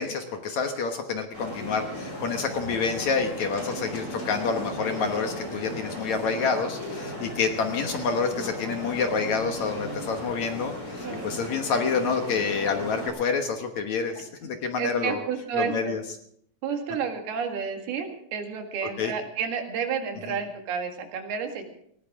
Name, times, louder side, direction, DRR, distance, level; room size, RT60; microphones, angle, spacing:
voice 1, 0.0-15.2 15.5-16.0 19.0-19.1, left 5 dB, 60° left, 5 dB, 2.2 m, -28 dB
sound 1, 1.3-13.1, left 1 dB, 35° left, 7.5 m, -36 dB
voice 2, 14.8-16.0 16.6-21.7, right 6 dB, 85° right, 4 dB, 3.8 m, -31 dB
19.0 x 18.5 x 3.6 m, 0.68 s
omnidirectional pair, 4.3 m